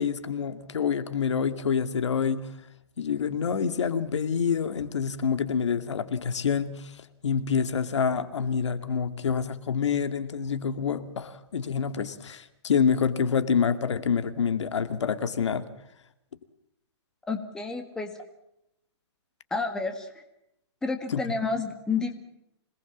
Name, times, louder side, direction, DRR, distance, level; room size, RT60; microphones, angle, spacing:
voice 1, 0.0-2.5 3.0-6.9 7.2-15.7 21.1-21.2, left 6 dB, 85° left, 11 dB, 2.4 m, -27 dB
voice 2, 17.3-18.1 19.5-20.2 20.8-22.1, left 4 dB, 5° left, 5 dB, 1.7 m, -30 dB
26.5 x 19.5 x 7.4 m, 0.81 s
hypercardioid pair, 170°, 15 cm